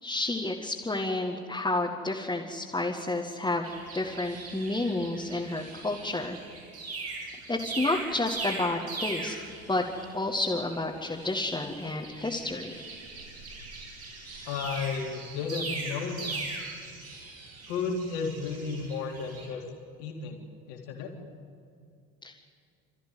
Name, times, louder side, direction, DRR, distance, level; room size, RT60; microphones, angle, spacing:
voice 1, 0.0-3.7 3.9-6.4 7.5-9.3 9.7-9.8 10.1-12.7 22.2-22.3, left 2 dB, 10° left, 0 dB, 2.1 m, -30 dB
sound 1, 3.6-10.3 10.6-19.5, right 3 dB, 80° right, 7.4 m, -40 dB
voice 2, 14.5-16.4 17.7-19.6 20.0-21.1, left 5 dB, 60° left, 1 dB, 3.6 m, -33 dB
29.5 x 14.0 x 9.4 m, 2.4 s
figure-of-eight pair, 60°, 42 cm